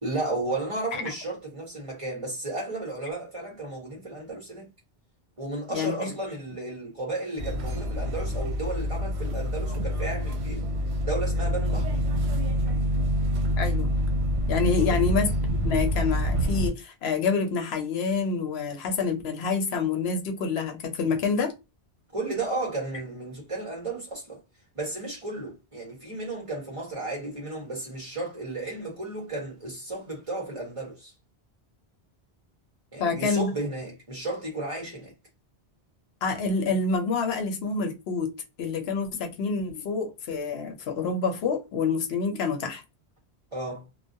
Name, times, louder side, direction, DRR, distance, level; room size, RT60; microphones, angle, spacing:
voice 1, 0.0-4.7 5.4-10.6 11.0-12.0 14.7-15.0 22.1-24.4 24.7-31.1 32.9-35.1 43.5-43.8, right 2 dB, 30° right, 1.0 m, -33 dB
voice 2, 5.7-6.1 13.6-13.9 14.5-21.5 33.0-33.5 36.2-38.3 38.6-42.8, left 4 dB, 75° left, 0.8 m, -27 dB
sound 1, 7.4-16.7, equal, 80° right, 0.9 m, -26 dB
2.2 x 2.1 x 2.6 m
omnidirectional pair, 1.1 m